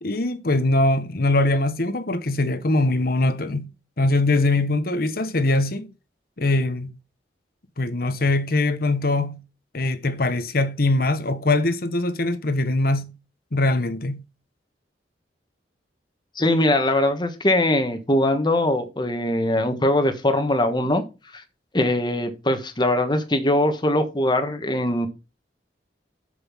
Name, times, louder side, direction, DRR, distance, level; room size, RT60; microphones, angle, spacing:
voice 1, 0.0-3.7 4.0-5.9 6.4-6.9 7.8-9.4 9.7-13.1 13.5-14.2, left 2 dB, 55° left, 1.1 m, -22 dB
voice 2, 16.3-21.0 21.7-25.1, left 1 dB, 25° left, 1.4 m, -21 dB
7.0 x 7.0 x 5.6 m
head